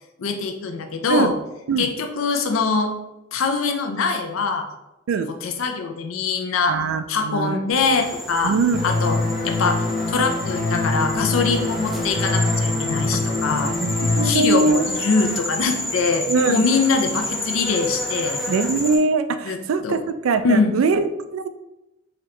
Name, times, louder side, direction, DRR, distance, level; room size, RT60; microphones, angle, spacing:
voice 1, 0.2-1.4 1.8-2.9 3.3-4.7 5.4-6.8 7.1-8.6 8.8-13.7 14.2-18.4 19.4-19.6 19.8-20.0 20.4-20.7, left 4 dB, 85° left, 5 dB, 0.5 m, -23 dB
voice 2, 6.7-7.6 8.4-8.8 13.6-14.9 16.3-16.6 18.5-21.5, right 4 dB, 80° right, 11 dB, 0.3 m, -22 dB
sound 1, 7.7-19.0, left 1 dB, ahead, 0.5 m, -30 dB
sound 2, 8.7-14.3, left 3 dB, 50° left, 0.7 m, -24 dB
3.9 x 2.9 x 3.2 m, 0.93 s
head